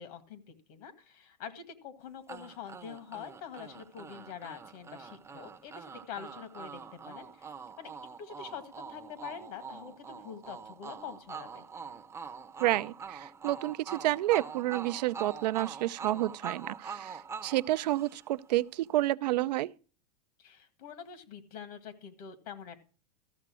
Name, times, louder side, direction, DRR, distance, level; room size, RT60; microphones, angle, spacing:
voice 1, 0.0-7.9 8.2-11.7 20.4-22.8, left 8 dB, 65° left, 2.0 m, -45 dB
sound 1, 2.3-18.5, right 6 dB, 10° right, 0.7 m, -44 dB
voice 2, 12.6-19.7, right 16 dB, 75° right, 0.5 m, -30 dB
14.0 x 6.6 x 6.2 m
hypercardioid pair, 125°, 21 cm